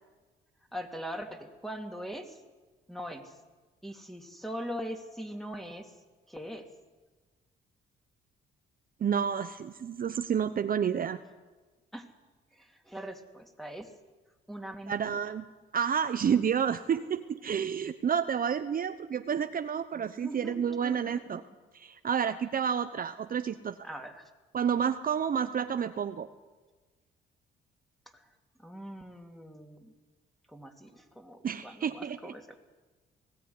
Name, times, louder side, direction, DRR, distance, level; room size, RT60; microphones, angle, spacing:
voice 1, 0.7-2.4 2.9-3.3 3.8-5.9 6.3-6.7 11.9-12.1 12.5-13.9 14.5-15.3 20.2-21.2 23.8-24.2 28.1-28.3 28.6-29.9 30.5-32.6, equal, ahead, 4 dB, 2.8 m, -41 dB
voice 2, 9.0-11.2 14.9-15.4 15.7-21.4 21.7-23.8 24.5-26.3 31.4-32.3, right 7 dB, 45° right, 9 dB, 0.9 m, -30 dB
19.5 x 16.0 x 9.7 m, 1.3 s
cardioid pair, 90°, 20 cm